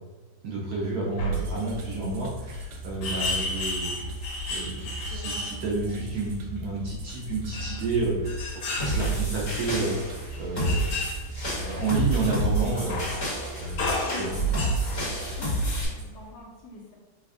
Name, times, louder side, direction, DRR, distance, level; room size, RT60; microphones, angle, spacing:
voice 1, 0.4-4.0 4.5-8.4 8.8-10.0 10.4-11.0 11.6-13.0 13.6-14.5, right 3 dB, 65° right, -5 dB, 1.0 m, -30 dB
sound 1, 0.9-1.0 1.2-1.5 2.5-2.6 3.0-5.9 7.5-9.5 10.2-11.2 11.9-12.0 12.9-13.4 13.8-15.2 15.9-16.0, left 1 dB, 90° left, 1.5 m, -32 dB
sound 2, 1.3-16.1, left 1 dB, 85° right, 1.3 m, -38 dB
sound 3, 8.8-15.9, right 2 dB, 45° left, 1.4 m, -29 dB
voice 2, 13.9-17.0, left 2 dB, 65° left, -3 dB, 1.1 m, -45 dB
3.4 x 2.2 x 3.5 m, 1.3 s
omnidirectional pair, 2.0 m